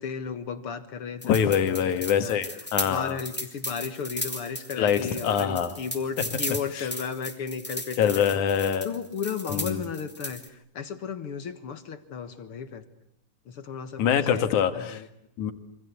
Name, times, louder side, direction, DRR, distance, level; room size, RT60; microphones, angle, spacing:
voice 1, 0.0-1.9 2.2-2.4 2.8-8.4 8.8-12.9 13.5-14.5 14.7-15.1, left 6 dB, 50° left, 11 dB, 2.0 m, -34 dB
voice 2, 1.2-3.2 4.8-5.7 6.2-6.3 6.7-6.9 8.0-8.9 9.5-9.8 14.0-15.0 15.4-15.5, left 8 dB, 70° left, 9 dB, 3.1 m, -24 dB
sound 1, 1.2-10.5, left 1 dB, 5° left, 2.6 m, -36 dB
27.5 x 26.0 x 8.3 m, 0.73 s
omnidirectional pair, 3.7 m